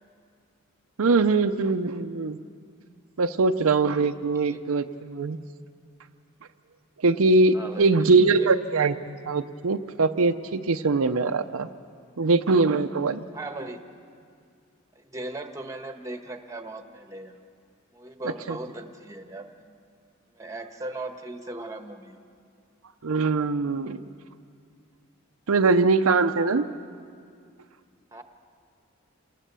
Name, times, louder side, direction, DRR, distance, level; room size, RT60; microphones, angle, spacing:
voice 1, 1.0-2.4 3.2-5.4 7.0-11.7 12.2-13.3 18.5-18.6 23.0-24.0 25.5-26.6, right 3 dB, 75° right, 8 dB, 0.6 m, -22 dB
voice 2, 7.5-8.5 13.3-13.8 14.9-17.3 17.9-19.7 20.3-22.2 28.1-28.2, right 2 dB, 15° right, 5 dB, 1.2 m, -38 dB
27.5 x 19.0 x 6.9 m, 2.2 s
head